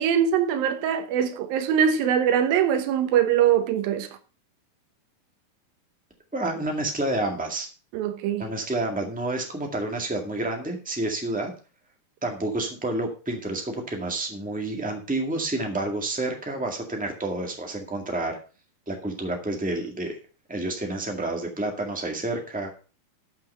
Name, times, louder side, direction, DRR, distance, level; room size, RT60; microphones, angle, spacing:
voice 1, 0.0-4.1 7.9-8.5, right 8 dB, 75° right, 2.8 m, -22 dB
voice 2, 6.3-7.7 8.4-11.5 12.2-18.4 18.9-20.2 20.5-22.7, right 2 dB, 10° right, 0.4 m, -29 dB
13.0 x 6.0 x 5.5 m
omnidirectional pair, 4.3 m